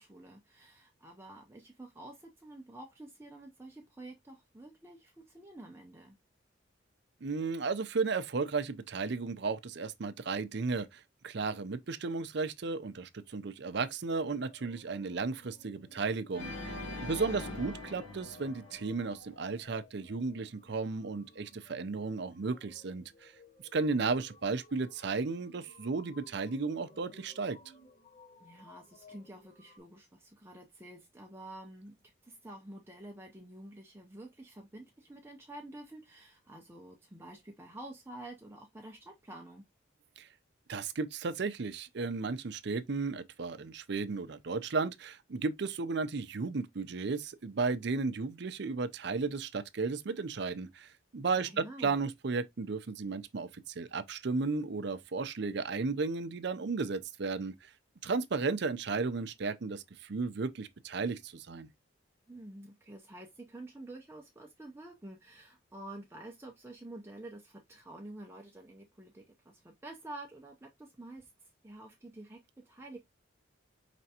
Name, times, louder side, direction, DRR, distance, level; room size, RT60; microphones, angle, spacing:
voice 1, 0.0-6.2 17.0-17.6 28.4-39.6 51.3-52.0 62.3-73.0, right 1 dB, 15° right, 0.6 m, -49 dB
voice 2, 7.2-23.3 23.7-27.6 40.2-40.3 40.7-57.7 58.0-61.7, right 4 dB, 60° right, 0.5 m, -34 dB
sound 1, 14.2-29.8, left 2 dB, 45° left, 1.9 m, -59 dB
Organ, 16.3-19.5, left 2 dB, 75° left, 1.0 m, -42 dB
5.1 x 3.3 x 2.8 m
head